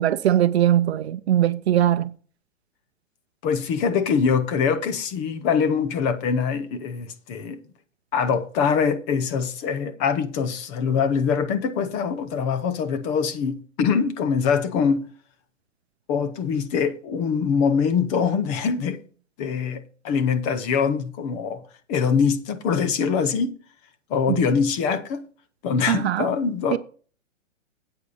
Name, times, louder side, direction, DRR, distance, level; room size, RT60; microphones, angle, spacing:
voice 1, 0.0-2.2 24.3-24.4 25.9-26.3 26.7-26.8, right 11 dB, 55° right, 0.7 m, -21 dB
voice 2, 3.4-7.6 8.1-15.0 16.1-19.0 19.4-21.6 21.9-23.5 24.1-25.2 25.6-26.8, left 6 dB, 20° left, 0.6 m, -23 dB
9.8 x 8.6 x 4.1 m
hypercardioid pair, 150°, 38 cm